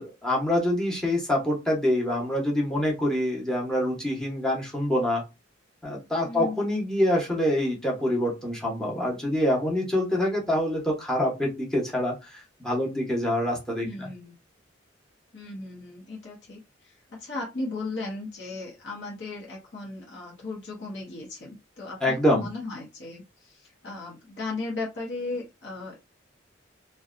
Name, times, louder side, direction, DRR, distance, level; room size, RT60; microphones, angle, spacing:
voice 1, 0.0-5.2 5.8-14.1 22.0-22.5, left 1 dB, 5° left, -1 dB, 0.8 m, -26 dB
voice 2, 6.2-6.6 13.8-14.3 15.3-26.0, left 3 dB, 65° left, -3 dB, 0.8 m, -36 dB
2.7 x 2.1 x 2.4 m, 0.24 s
head